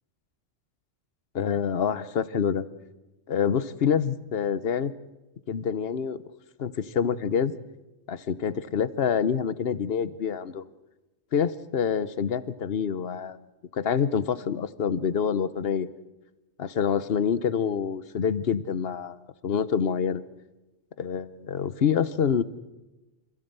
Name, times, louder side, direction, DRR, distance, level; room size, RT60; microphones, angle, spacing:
voice 1, 1.3-2.7 3.3-4.9 5.5-6.2 6.6-7.5 8.1-10.6 11.3-13.4 13.7-15.9 16.6-19.2 19.4-20.2 21.0-22.4, left 7 dB, 55° left, 15 dB, 1.1 m, -26 dB
26.0 x 15.5 x 8.2 m, 1.0 s
omnidirectional pair, 1.3 m